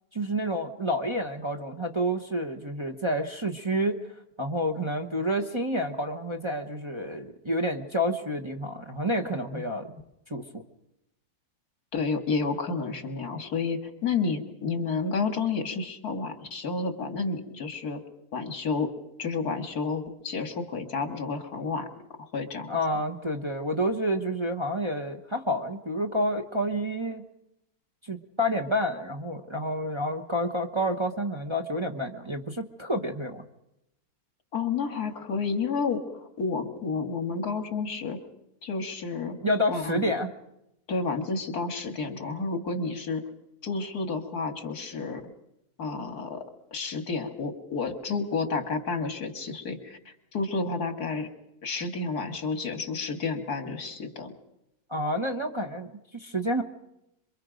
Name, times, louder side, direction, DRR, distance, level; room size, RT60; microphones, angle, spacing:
voice 1, 0.1-4.0 4.4-9.9 10.3-10.6 22.7-27.2 28.0-33.4 39.4-40.3 54.9-56.6, equal, 20° right, 2 dB, 1.1 m, -29 dB
voice 2, 11.9-18.0 18.3-18.9 19.2-21.9 22.3-22.8 34.5-38.2 38.6-39.4 39.7-40.1 40.9-43.2 43.6-45.2 45.8-46.4 46.7-51.3 51.6-54.3, left 4 dB, 75° left, 7 dB, 2.3 m, -30 dB
26.5 x 23.5 x 5.2 m, 0.85 s
omnidirectional pair, 1.6 m